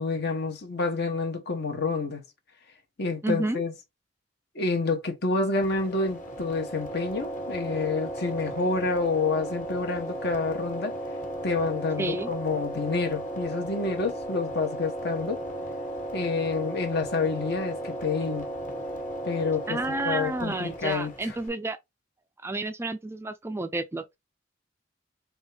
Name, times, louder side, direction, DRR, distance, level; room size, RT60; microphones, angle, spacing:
voice 1, 0.0-2.2 3.0-3.7 4.5-10.9 11.4-15.4 16.1-18.5 19.2-19.8 20.0-21.4, left 4 dB, 60° left, 1.1 m, -28 dB
voice 2, 3.2-3.6 12.0-12.3 19.7-21.8 22.4-24.2, right 2 dB, 15° right, 0.3 m, -30 dB
sound 1, 5.5-21.5, right 1 dB, 45° left, 1.4 m, -35 dB
3.6 x 3.4 x 3.3 m
head